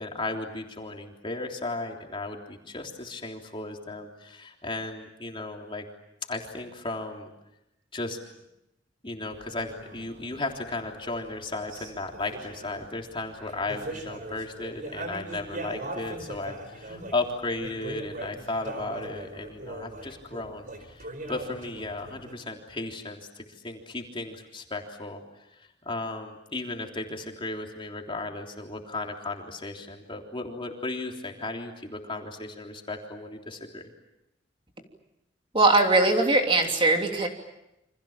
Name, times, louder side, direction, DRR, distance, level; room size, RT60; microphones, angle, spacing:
voice 1, 0.0-5.8 6.3-7.3 7.9-8.2 9.0-33.8, left 2 dB, 30° left, 1 dB, 3.5 m, -35 dB
sound 1, 9.3-22.3, right 1 dB, 45° right, 4.9 m, -41 dB
voice 2, 35.5-37.3, right 2 dB, 30° right, 3 dB, 3.2 m, -20 dB
29.0 x 26.5 x 7.4 m, 0.87 s
head